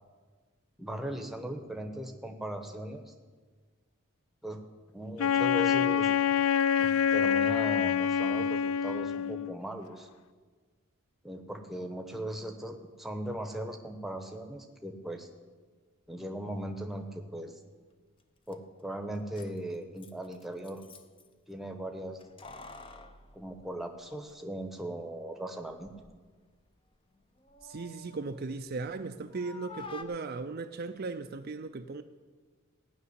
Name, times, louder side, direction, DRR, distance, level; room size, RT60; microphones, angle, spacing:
voice 1, 0.8-3.1 4.4-4.6 4.9-6.1 6.8-10.1 11.2-15.3 16.1-17.6 18.5-20.8 21.5-22.2 23.3-25.9, right 1 dB, ahead, 4 dB, 0.9 m, -38 dB
Wind instrument woodwind instrument, 5.2-9.6, left 8 dB, 75° left, 0.3 m, -26 dB
Keys jangling, 18.2-18.3 18.5-18.6 19.2-21.3 22.2-24.4 24.7-24.8 25.6-26.2 26.5-29.0 29.3-30.0, left 3 dB, 25° left, 0.6 m, -50 dB
voice 2, 27.6-32.0, right 3 dB, 45° right, 7 dB, 0.5 m, -37 dB
16.5 x 6.1 x 9.6 m, 1.5 s
head